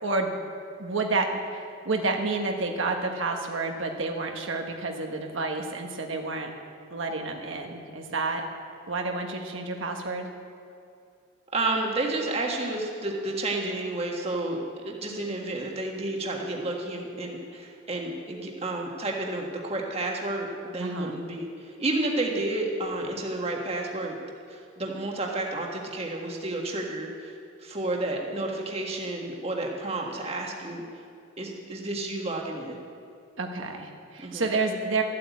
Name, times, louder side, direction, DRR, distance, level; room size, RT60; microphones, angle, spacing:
voice 1, 0.8-6.5 6.9-8.4 8.9-10.3 20.8-21.1 33.4-35.0, right 3 dB, 70° right, 3 dB, 1.3 m, -29 dB
voice 2, 11.5-24.1 24.5-27.3 27.6-30.8 31.4-32.8 34.2-34.4, right 2 dB, 30° right, 0 dB, 1.6 m, -31 dB
14.0 x 8.2 x 8.4 m, 2.5 s
head